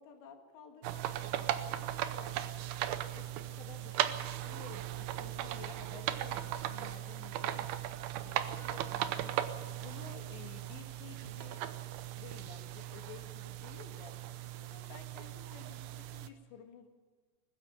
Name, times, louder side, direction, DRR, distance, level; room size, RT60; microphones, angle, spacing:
voice 1, 0.0-2.7 3.1-7.7 8.2-9.4 9.8-11.6 12.1-14.2 14.6-16.9, left 7 dB, 70° left, 4 dB, 3.8 m, -53 dB
sound 1, 0.8-16.3, right 12 dB, 85° right, 2.2 m, -38 dB
20.0 x 15.0 x 8.9 m, 1.4 s
omnidirectional pair, 5.6 m